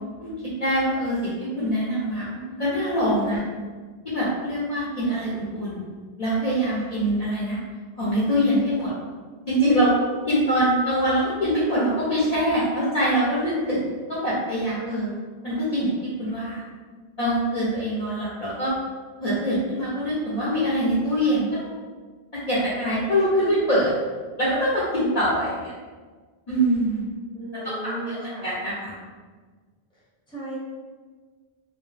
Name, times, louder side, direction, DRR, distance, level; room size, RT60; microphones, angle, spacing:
voice 1, 0.6-3.4 4.0-5.9 6.2-7.6 8.0-8.9 9.5-9.9 10.3-13.8 14.1-15.1 15.4-15.9 16.2-16.6 17.2-18.8 19.2-21.7 22.5-23.9 24.4-25.7 26.5-27.1 27.5-28.9, equal, 45° left, -9 dB, 0.6 m, -24 dB
voice 2, 27.3-28.4 30.3-30.6, right 1 dB, 5° left, -8 dB, 0.7 m, -34 dB
2.2 x 2.0 x 3.1 m, 1.4 s
omnidirectional pair, 1.1 m